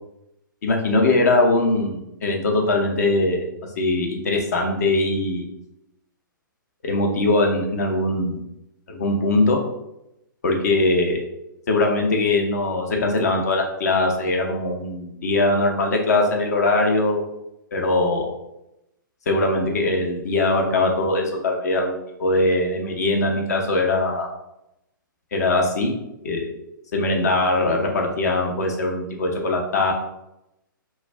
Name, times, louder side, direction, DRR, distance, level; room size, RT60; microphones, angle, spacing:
voice 1, 0.6-3.4 3.8-5.4 6.8-8.4 8.9-9.6 10.4-11.2 11.7-17.2 17.7-18.3 19.3-24.3 25.3-25.9 26.2-26.5 26.9-29.9, left 2 dB, 50° left, 1 dB, 0.6 m, -21 dB
2.3 x 2.1 x 3.3 m, 0.86 s
figure-of-eight pair, 125°, 11 cm